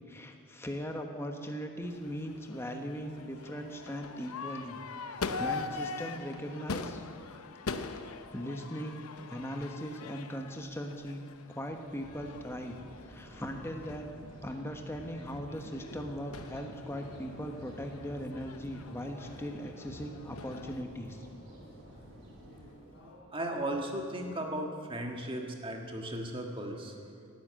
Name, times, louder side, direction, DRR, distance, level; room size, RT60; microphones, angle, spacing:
voice 1, 0.1-7.0 7.3-7.4 8.3-9.0 9.3-11.2 11.5-12.8 13.1-14.1 14.4-21.3, equal, 10° left, 4 dB, 1.2 m, -39 dB
Crowd / Fireworks, 1.8-20.8, left 4 dB, 80° left, 0.8 m, -43 dB
sound 1, 12.0-22.7, equal, 60° right, 4.1 m, -52 dB
sound 2, 16.9-23.2, equal, 60° left, 3.8 m, -55 dB
voice 2, 23.3-26.9, right 1 dB, 25° right, 2 dB, 1.6 m, -36 dB
18.0 x 10.0 x 7.6 m, 2.3 s
head